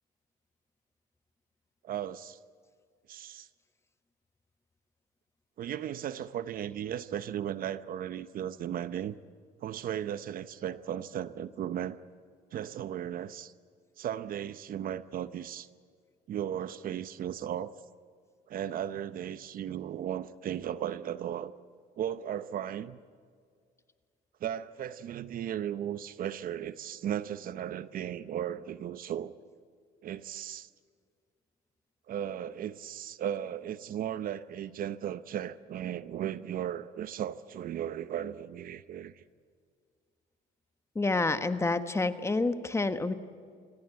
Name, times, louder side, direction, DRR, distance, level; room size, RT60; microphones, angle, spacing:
voice 1, 1.8-2.4 3.1-3.5 5.6-9.2 9.6-12.0 12.5-13.5 14.0-15.7 16.3-17.7 18.5-21.5 22.0-23.0 24.4-29.3 30.0-30.7 32.1-39.2, right 10 dB, 55° right, 14 dB, 0.8 m, -36 dB
voice 2, 40.9-43.1, left 3 dB, 15° left, 10 dB, 1.3 m, -28 dB
25.0 x 18.5 x 9.3 m, 2.1 s
cardioid pair, 110°, 17 cm